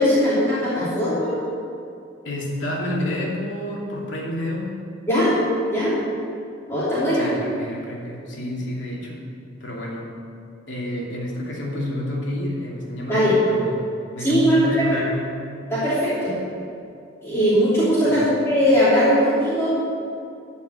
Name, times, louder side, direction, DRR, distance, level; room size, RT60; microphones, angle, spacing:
voice 1, 0.0-1.4 5.1-5.3 5.7-6.0 6.7-7.3 13.1-13.3 14.2-15.0 15.7-16.3 17.2-19.7, equal, 15° left, -12 dB, 3.0 m, -19 dB
voice 2, 2.2-4.9 7.1-9.2 9.6-10.1 10.7-13.8 14.1-15.5 18.0-18.2, left 1 dB, 75° left, -3 dB, 2.7 m, -29 dB
14.0 x 5.7 x 8.1 m, 2.5 s
head